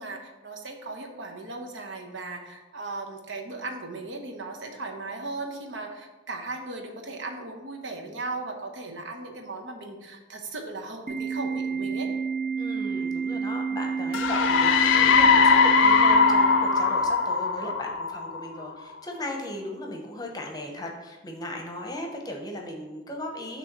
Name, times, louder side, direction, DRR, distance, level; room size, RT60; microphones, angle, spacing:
voice 1, 0.0-12.1, right 3 dB, 75° right, 2 dB, 0.9 m, -37 dB
Organ, 11.1-17.1, right 5 dB, 45° right, 1.0 m, -30 dB
voice 2, 12.6-23.6, left 1 dB, 20° left, 1 dB, 0.8 m, -37 dB
sound 1, 14.1-18.7, left 5 dB, 90° left, 0.4 m, -20 dB
6.7 x 3.1 x 5.9 m, 1.1 s
head